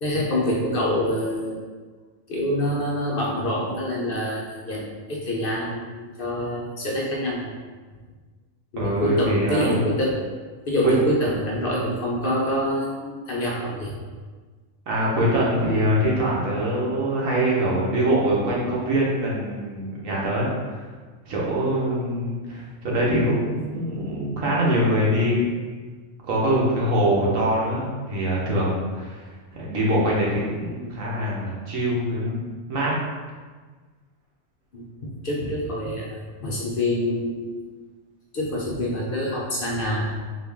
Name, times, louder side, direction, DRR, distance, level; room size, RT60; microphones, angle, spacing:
voice 1, 0.0-1.6 2.3-7.5 8.7-10.2 10.7-13.9 27.0-27.1 30.8-31.0 34.7-34.9 35.2-37.6 38.3-40.0, left 1 dB, 55° left, -3 dB, 0.7 m, -26 dB
voice 2, 8.8-9.8 10.8-10.9 14.9-20.9 21.2-25.5 26.2-32.4 32.7-33.0, right 1 dB, 85° right, -4 dB, 1.4 m, -23 dB
4.2 x 2.5 x 3.4 m, 1.4 s
omnidirectional pair, 1.3 m